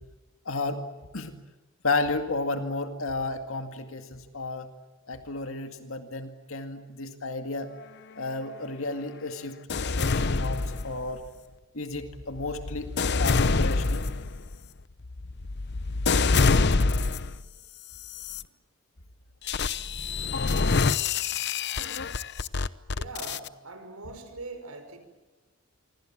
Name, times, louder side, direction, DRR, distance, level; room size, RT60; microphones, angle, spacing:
voice 1, 0.5-0.8 1.1-1.3 1.8-4.7 5.1-7.7 8.2-11.2 11.7-12.9 13.2-14.0, left 3 dB, 70° left, 6 dB, 2.1 m, -32 dB
sound 1, 9.7-11.3 11.9-17.4 18.0-18.4 19.5-23.5, left 4 dB, 50° left, 0.8 m, -26 dB
voice 2, 22.9-25.0, right 2 dB, 90° right, 8 dB, 5.6 m, -42 dB
27.0 x 24.5 x 7.5 m, 1.2 s
head